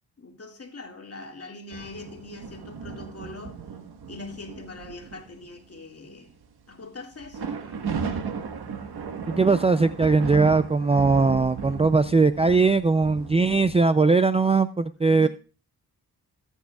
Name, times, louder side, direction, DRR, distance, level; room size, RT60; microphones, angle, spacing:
voice 1, 0.2-3.6 4.1-6.3 6.7-7.8 8.8-9.1 15.0-15.3, left 3 dB, 40° left, 2.2 m, -42 dB
sound 1, 1.7-5.6 6.3-6.4 7.1-13.8, right 6 dB, 85° right, 1.6 m, -35 dB
voice 2, 9.3-15.3, right 4 dB, 15° right, 0.4 m, -20 dB
18.5 x 8.2 x 2.4 m
cardioid pair, 65°, 37 cm